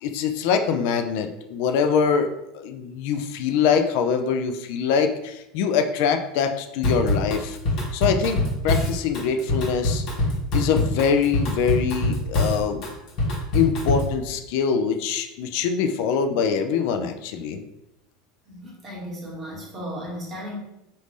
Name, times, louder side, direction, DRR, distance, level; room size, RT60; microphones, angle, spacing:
voice 1, 0.0-7.6 7.9-10.0 10.5-12.8 13.5-17.6, left 6 dB, 70° left, 6 dB, 0.4 m, -24 dB
Drum kit / Drum, 6.8-14.1, left 1 dB, 50° left, 1.2 m, -24 dB
voice 2, 18.5-20.6, equal, 30° right, -3 dB, 1.3 m, -35 dB
3.5 x 2.6 x 3.1 m, 0.86 s
supercardioid pair, 120°, 0 cm